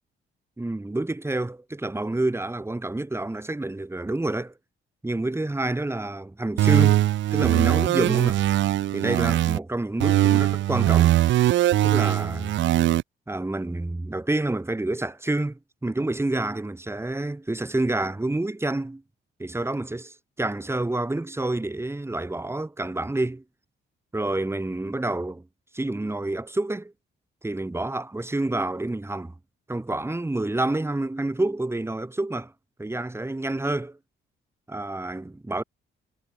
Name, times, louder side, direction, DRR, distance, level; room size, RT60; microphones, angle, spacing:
voice 1, 0.6-4.5 5.0-7.0 7.3-8.4 8.9-11.2 11.8-12.6 13.3-19.0 19.4-23.4 24.1-25.4 25.7-26.9 27.4-29.3 29.7-32.5 32.8-34.0 34.7-35.6, right 2 dB, 10° right, 4.2 m, -28 dB
sound 1, 6.6-9.6 10.0-13.0, right 14 dB, 70° right, 0.6 m, -21 dB
cardioid pair, 90°, 20 cm